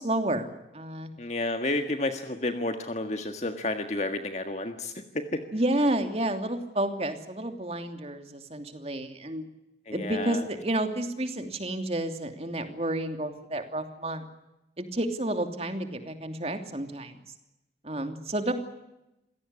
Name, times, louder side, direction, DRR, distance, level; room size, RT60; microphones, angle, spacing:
voice 1, 0.0-1.1 5.5-9.4 9.9-14.2 14.8-17.2 17.8-18.5, right 1 dB, 35° right, 6 dB, 3.0 m, -30 dB
voice 2, 1.2-5.4 9.9-10.4, left 2 dB, 40° left, 7 dB, 1.7 m, -31 dB
27.5 x 17.0 x 9.9 m, 0.90 s
head